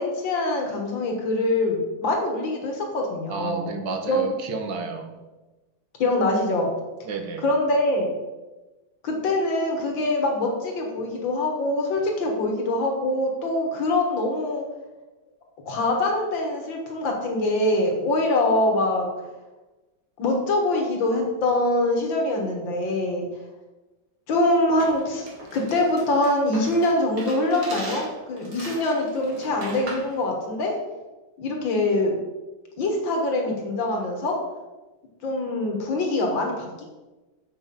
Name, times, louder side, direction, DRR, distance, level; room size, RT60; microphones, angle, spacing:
voice 1, 0.0-3.7 4.1-4.3 6.0-6.7 7.4-8.1 9.0-14.6 15.7-19.1 20.2-23.3 24.3-25.3 25.5-30.7 31.4-32.2 32.8-34.4 35.2-36.9, left 2 dB, 70° left, 1 dB, 2.2 m, -24 dB
voice 2, 3.3-5.1 7.0-7.5, right 4 dB, 65° right, 6 dB, 1.5 m, -31 dB
sound 1, 24.8-30.1, right 2 dB, 45° right, 2.5 m, -39 dB
7.3 x 6.1 x 5.5 m, 1.2 s
omnidirectional pair, 2.3 m